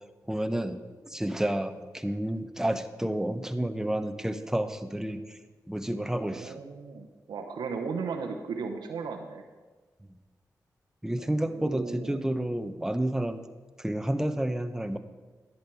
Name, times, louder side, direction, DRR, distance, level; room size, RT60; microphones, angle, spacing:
voice 1, 0.3-5.4 5.7-6.6 11.0-13.4 13.8-15.0, right 1 dB, 5° right, 9 dB, 0.9 m, -30 dB
voice 2, 6.1-9.4 11.3-12.2, right 5 dB, 85° right, 4 dB, 0.8 m, -36 dB
10.5 x 8.5 x 4.6 m, 1.3 s
cardioid pair, 45°, 7 cm